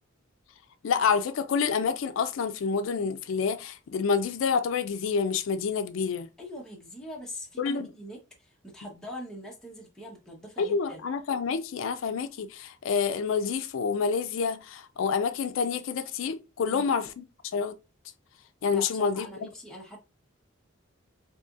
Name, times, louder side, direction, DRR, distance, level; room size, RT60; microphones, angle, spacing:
voice 1, 0.8-6.3 7.6-7.9 10.6-17.2 17.5-17.8 18.6-19.5, left 5 dB, 75° left, 0.4 m, -28 dB
voice 2, 6.4-11.0 16.6-16.9 18.7-20.0, equal, 5° left, 0.7 m, -43 dB
3.9 x 2.9 x 2.3 m
head